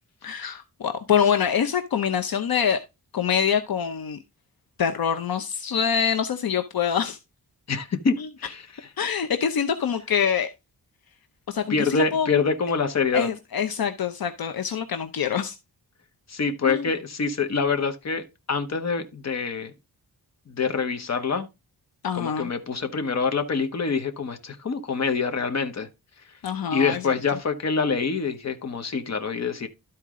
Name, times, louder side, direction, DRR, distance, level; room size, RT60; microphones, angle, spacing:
voice 1, 0.2-2.8 3.1-4.2 4.8-7.2 8.2-8.3 9.0-10.5 11.5-12.3 13.1-15.6 16.6-16.9 22.0-22.5 26.4-27.2, left 7 dB, 65° left, 0.8 m, -25 dB
voice 2, 7.7-8.6 11.7-13.3 16.3-19.7 20.5-21.5 22.1-25.9 26.7-29.7, left 5 dB, 45° left, 1.1 m, -26 dB
12.5 x 4.4 x 3.7 m
wide cardioid pair, 155°, 38 cm